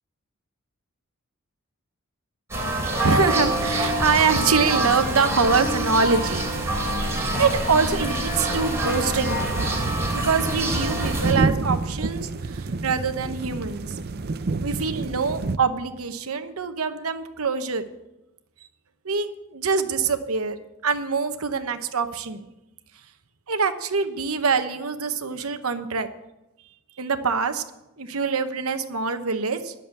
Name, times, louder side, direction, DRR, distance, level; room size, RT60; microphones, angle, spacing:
sound 1, 2.5-11.3, right 1 dB, 15° right, 2.8 m, -26 dB
voice 1, 3.0-6.5 6.9-9.4 10.1-14.0 14.6-17.8 19.0-20.6 20.8-22.5 23.5-26.1 27.0-27.6 28.0-29.7, right 5 dB, 85° right, 8 dB, 1.0 m, -24 dB
sound 2, 9.3-15.6, right 3 dB, 45° right, 0.5 m, -28 dB
11.0 x 7.2 x 8.1 m, 0.95 s
head